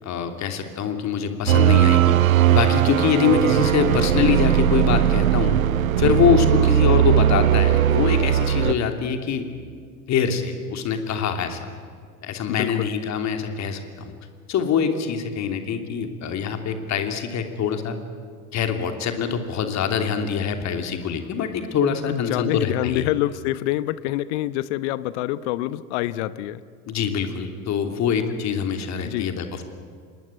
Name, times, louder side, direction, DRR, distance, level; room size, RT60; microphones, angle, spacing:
voice 1, 0.0-2.2 2.5-5.6 6.0-9.6 10.1-11.7 12.2-14.1 14.5-18.0 18.5-23.0 26.9-29.6, left 7 dB, 40° left, 6 dB, 3.1 m, -24 dB
sound 1, 1.5-8.7, right 11 dB, 75° right, 0.9 m, -18 dB
voice 2, 12.5-12.9 22.1-26.6 29.0-29.3, left 15 dB, 55° left, 16 dB, 1.1 m, -26 dB
26.5 x 20.5 x 9.3 m, 2.1 s
figure-of-eight pair, 70°, 42 cm